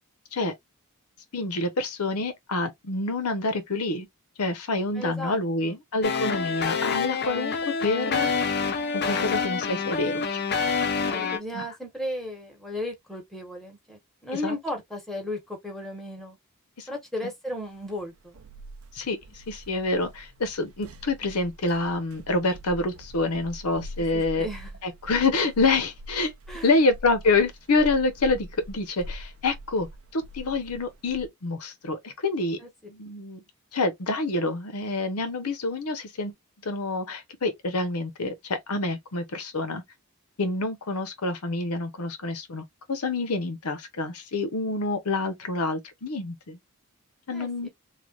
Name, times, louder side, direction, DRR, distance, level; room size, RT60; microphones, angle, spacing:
voice 1, 1.3-4.1 4.4-8.5 8.9-10.4 11.5-11.6 14.4-14.5 16.8-16.9 18.9-24.5 24.8-26.3 26.6-29.9 30.1-32.6 32.9-33.4 33.7-36.3 36.6-39.8 40.4-42.6 42.9-46.6 47.3-47.7, left 3 dB, 90° left, 0.8 m, -27 dB
voice 2, 4.9-5.8 11.0-16.4 16.9-18.4 24.1-24.7 26.5-26.8 32.6-32.7 47.3-47.7, left 1 dB, ahead, 1.0 m, -35 dB
sound 1, 6.0-11.4, left 5 dB, 50° left, 0.6 m, -27 dB
sound 2, 17.8-31.3, equal, 70° right, 0.6 m, -43 dB
3.3 x 2.4 x 2.4 m
head